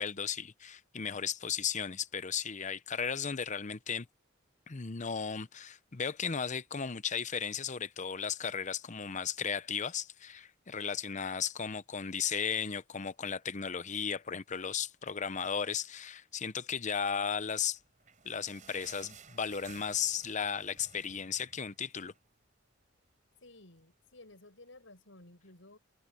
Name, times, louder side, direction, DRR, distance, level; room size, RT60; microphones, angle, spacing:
voice 1, 0.0-4.1 4.7-17.8 18.2-22.1, left 7 dB, 40° left, 0.8 m, -35 dB
sound 1, 17.7-22.4 22.7-22.8 23.1-23.3 23.9-24.0, right 6 dB, 40° right, 4.3 m, -56 dB
voice 2, 23.4-25.8, left 2 dB, 75° left, 6.4 m, -55 dB
head